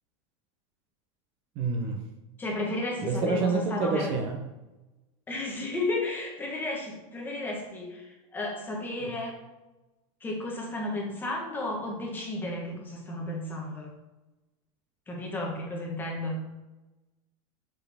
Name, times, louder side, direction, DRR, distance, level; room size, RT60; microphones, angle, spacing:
voice 1, 1.6-2.0 3.0-4.4, right 4 dB, 35° right, 3 dB, 0.7 m, -27 dB
voice 2, 2.4-4.1 5.3-9.4 10.2-13.9 15.1-16.4, left 2 dB, 10° left, -1 dB, 1.0 m, -33 dB
6.0 x 4.9 x 3.4 m, 1.1 s
supercardioid pair, 170°, 17 cm